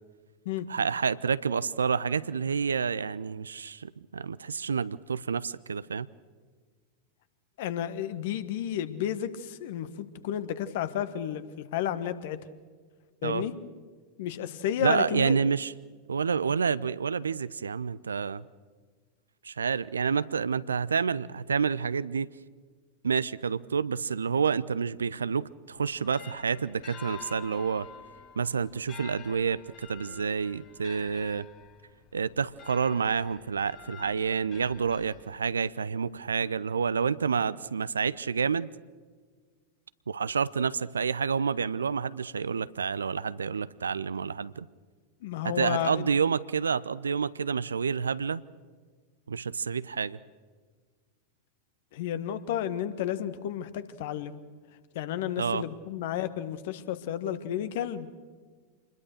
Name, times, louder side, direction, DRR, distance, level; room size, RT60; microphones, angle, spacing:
voice 1, 0.7-6.1 13.2-13.4 14.8-15.7 16.1-18.4 19.4-22.3 23.0-27.9 28.4-31.5 32.1-38.7 40.1-44.7 45.4-48.4 49.3-50.2 55.4-55.6, right 6 dB, 70° right, 18 dB, 0.6 m, -29 dB
voice 2, 7.6-12.4 13.2-13.6 14.2-15.4 45.2-46.1 51.9-54.3 54.9-58.1, left 10 dB, 55° left, 12 dB, 1.5 m, -32 dB
sound 1, 25.8-35.7, left 8 dB, 35° left, 2.0 m, -49 dB
27.5 x 21.0 x 6.5 m, 1.5 s
figure-of-eight pair, 90°, 0 cm